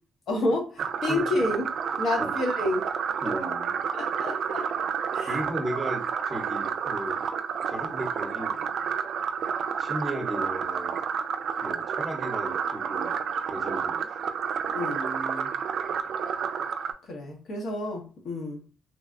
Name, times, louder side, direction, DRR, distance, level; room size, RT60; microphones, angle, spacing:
voice 1, 0.3-1.7 2.0-2.8 4.0-4.6 5.1-5.3 5.7-5.8 14.7-15.5 17.1-18.6, left 1 dB, 65° left, 1 dB, 1.0 m, -29 dB
sound 1, 0.8-16.9, right 7 dB, 65° right, 0.3 m, -30 dB
voice 2, 3.2-3.8 5.2-7.2 7.7-9.0 9.8-10.9 11.6-14.2, right 1 dB, 20° right, 2 dB, 0.9 m, -35 dB
3.2 x 2.2 x 2.5 m, 0.35 s
cardioid pair, 90°, 0 cm